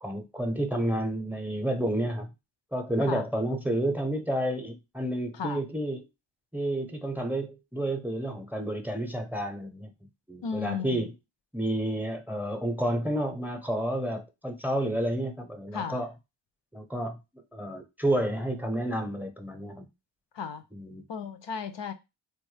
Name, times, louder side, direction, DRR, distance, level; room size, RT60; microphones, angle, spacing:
voice 1, 0.0-2.3 2.7-6.0 6.5-9.9 10.3-11.1 11.5-16.1 16.7-17.2 17.5-19.9 20.7-21.0, right 1 dB, 5° right, 0.6 m, -30 dB
voice 2, 10.4-11.1 15.7-16.1 20.3-20.6 21.1-21.9, left 6 dB, 70° left, 0.5 m, -34 dB
3.4 x 2.2 x 3.2 m
cardioid pair, 40°, 45 cm